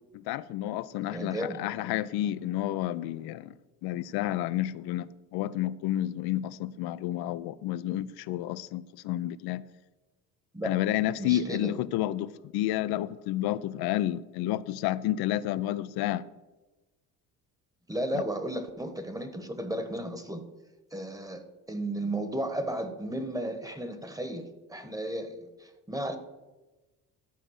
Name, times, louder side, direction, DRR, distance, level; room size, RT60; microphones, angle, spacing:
voice 1, 0.3-3.5 3.8-9.6 10.6-16.2 18.1-18.2, left 13 dB, 75° left, 0.6 m, -30 dB
voice 2, 1.1-1.6 10.5-10.7 11.2-11.7 17.9-20.4 20.9-26.2, right 1 dB, 10° right, 1.1 m, -34 dB
12.5 x 5.0 x 6.4 m
cardioid pair, 95°, 38 cm